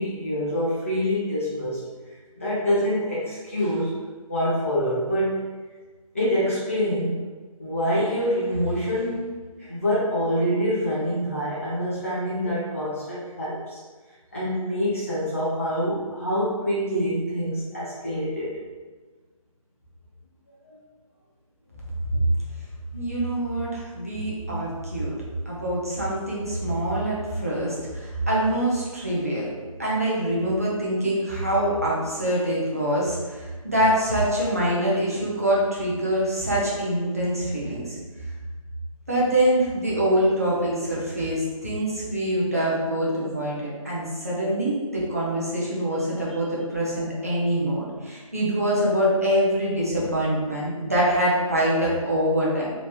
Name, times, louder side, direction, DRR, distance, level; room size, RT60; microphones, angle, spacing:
voice 1, 0.0-1.8 2.3-3.9 4.3-5.4 6.1-7.2 7.6-9.3 9.6-13.8 14.3-18.6 20.6-20.8, equal, 25° left, -10 dB, 0.8 m, -26 dB
voice 2, 22.9-25.1 25.5-29.5 29.8-38.0 39.1-52.7, right 1 dB, 25° right, -6 dB, 0.6 m, -24 dB
3.0 x 2.5 x 3.5 m, 1.3 s
figure-of-eight pair, 175°, 18 cm